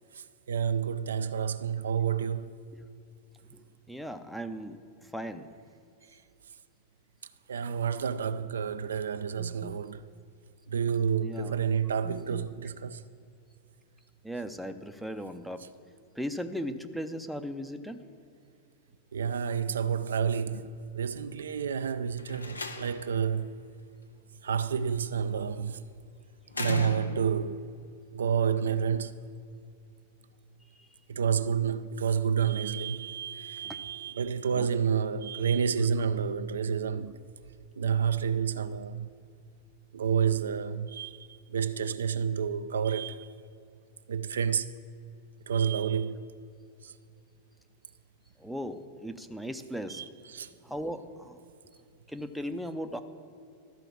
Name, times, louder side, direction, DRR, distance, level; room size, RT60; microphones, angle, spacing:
voice 1, 0.5-2.5 7.5-10.0 10.7-13.0 19.1-23.5 24.4-25.8 26.6-27.6 28.1-29.1 31.1-37.1 37.8-39.1 39.9-41.2 41.5-43.3 44.1-44.7 45.5-46.2 46.8-46.9 49.9-50.5, right 7 dB, 65° right, 0.3 m, -29 dB
voice 2, 3.9-5.5 9.4-9.8 11.2-11.5 12.0-12.4 14.2-15.6 16.2-18.0 30.8-30.9 33.6-33.8 34.5-34.7 48.4-50.0 50.6-51.4 52.1-53.0, equal, ahead, 0.6 m, -38 dB
Slam, 22.2-23.2 24.7-25.2 26.5-27.5, left 4 dB, 80° left, 0.6 m, -37 dB
12.5 x 4.9 x 7.4 m
figure-of-eight pair, 90°, 0 cm